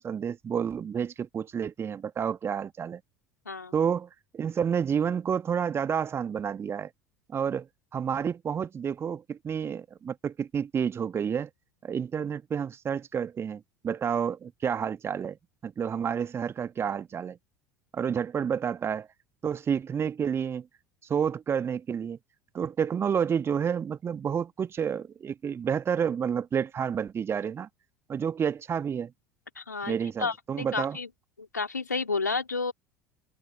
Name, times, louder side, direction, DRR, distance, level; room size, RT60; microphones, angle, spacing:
voice 1, 0.0-3.0 3.7-6.9 7.3-11.5 11.8-15.4 15.6-17.4 17.9-19.1 19.4-20.7 21.1-22.2 22.5-27.7 28.1-29.1 29.9-31.0, right 7 dB, 25° right, 1.4 m, -30 dB
voice 2, 29.6-31.1 31.5-32.7, left 4 dB, 80° left, 2.7 m, -31 dB
figure-of-eight pair, 70°, 9 cm